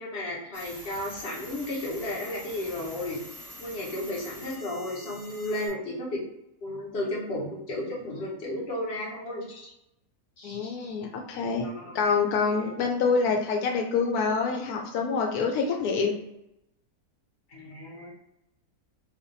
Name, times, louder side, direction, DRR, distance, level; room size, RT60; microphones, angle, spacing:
voice 1, 0.0-3.2 3.6-6.2 6.6-9.7 10.4-10.9 11.6-12.0 12.4-12.7 17.5-18.1, left 1 dB, 45° left, -5 dB, 1.3 m, -34 dB
sound 1, 0.5-5.7, equal, 20° right, 0.7 m, -45 dB
voice 2, 10.4-11.7 11.9-16.1, left 5 dB, 85° left, 2 dB, 1.1 m, -26 dB
3.4 x 2.5 x 3.9 m, 0.85 s
omnidirectional pair, 1.6 m